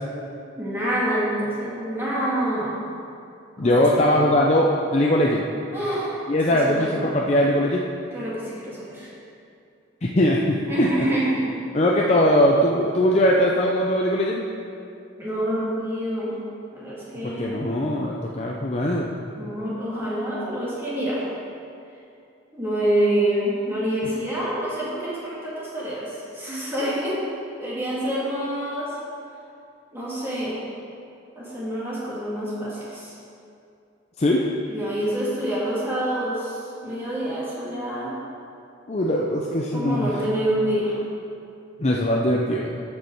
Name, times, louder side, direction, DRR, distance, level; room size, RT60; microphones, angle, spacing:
voice 1, 0.5-2.9 3.6-3.7 4.0-4.4 5.7-6.1 6.5-7.0 8.1-9.1 10.7-11.5 15.2-16.3 16.7-17.6 19.4-21.3 22.5-27.2 27.6-28.9 29.9-30.6 31.4-33.1 34.7-38.2 39.7-41.0, right 1 dB, 10° right, -8 dB, 2.1 m, -27 dB
voice 2, 3.6-5.5 6.3-7.9 10.0-11.1 11.7-14.5 17.2-19.2 34.2-34.5 38.9-40.2 41.8-42.7, left 1 dB, 35° left, -2 dB, 0.5 m, -21 dB
13.5 x 5.4 x 4.6 m, 2.6 s
head